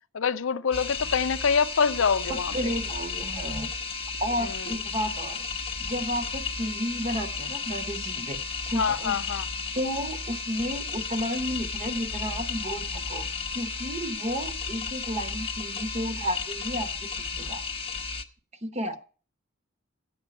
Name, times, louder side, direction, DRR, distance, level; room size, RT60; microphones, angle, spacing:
voice 1, 0.1-2.5 4.4-4.6 8.8-9.4, left 6 dB, 70° left, 0.5 m, -25 dB
sound 1, 0.7-18.2, left 5 dB, 25° left, 0.7 m, -33 dB
voice 2, 2.3-3.7 4.2-5.5 5.8-9.2 9.7-17.6 18.6-19.0, equal, 30° right, 0.9 m, -32 dB
11.5 x 8.5 x 5.3 m
head